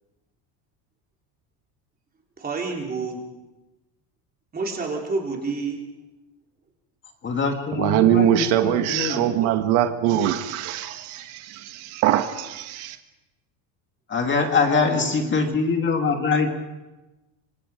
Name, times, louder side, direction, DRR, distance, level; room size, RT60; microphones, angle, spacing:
voice 1, 2.4-3.2 4.5-5.9 9.0-9.5 14.6-15.4, right 4 dB, 20° right, 0 dB, 3.7 m, -30 dB
voice 2, 7.2-9.4 14.1-16.5, left 4 dB, 25° left, 4 dB, 2.0 m, -23 dB
voice 3, 7.8-13.0, right 11 dB, 70° right, 7 dB, 1.6 m, -22 dB
26.5 x 25.0 x 5.0 m, 1.0 s
cardioid pair, 165°, 49 cm